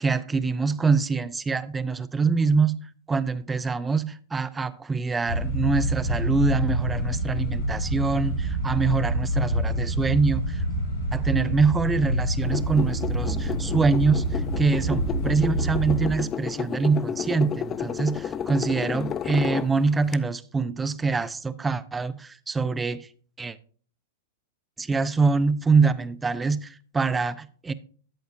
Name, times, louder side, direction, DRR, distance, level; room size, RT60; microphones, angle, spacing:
voice 1, 0.0-2.8 3.1-10.6 11.1-23.1 23.4-23.6 24.8-27.7, right 4 dB, 15° right, 0.6 m, -24 dB
sound 1, 5.3-16.1, equal, 70° left, 5.0 m, -27 dB
sound 2, 12.4-20.1, left 8 dB, 30° left, 0.5 m, -32 dB
13.0 x 7.9 x 2.5 m
hypercardioid pair, 110°, 0 cm